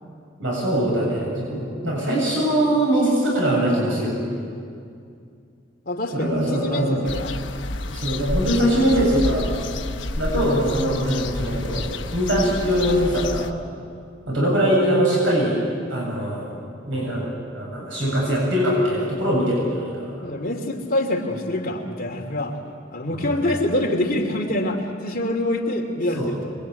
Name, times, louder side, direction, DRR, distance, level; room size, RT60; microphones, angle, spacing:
voice 1, 0.4-4.1 6.1-7.0 7.9-9.5 10.2-13.5 14.3-15.6 15.9-16.5 16.9-20.2 23.1-23.3 26.1-26.3, right 1 dB, 80° right, -3 dB, 7.6 m, -22 dB
voice 2, 5.9-7.4 10.4-10.6 14.5-15.0 20.2-22.6 22.9-26.5, left 1 dB, 50° left, 2 dB, 2.8 m, -26 dB
sound 1, 7.0-13.5, left 2 dB, 75° left, 1.2 m, -29 dB
26.0 x 22.0 x 9.1 m, 2.4 s
head